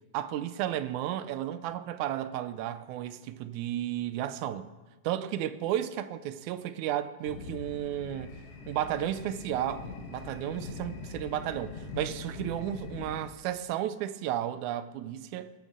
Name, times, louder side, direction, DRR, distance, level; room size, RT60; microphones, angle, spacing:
voice 1, 0.1-4.7 5.0-8.3 8.7-15.5, right 11 dB, 85° right, 2.1 m, -33 dB
sound 1, 7.2-13.3, left 4 dB, 60° left, 2.3 m, -42 dB
20.5 x 12.0 x 3.7 m
omnidirectional pair, 3.3 m